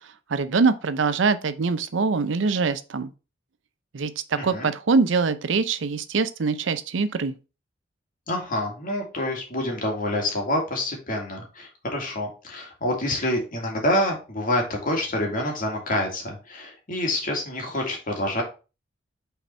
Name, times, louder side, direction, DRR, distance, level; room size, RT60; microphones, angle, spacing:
voice 1, 0.3-3.1 3.9-7.3, right 4 dB, 80° right, 0.6 m, -23 dB
voice 2, 4.4-4.7 8.3-18.4, left 1 dB, 50° left, 2.2 m, -27 dB
5.8 x 4.2 x 4.4 m
head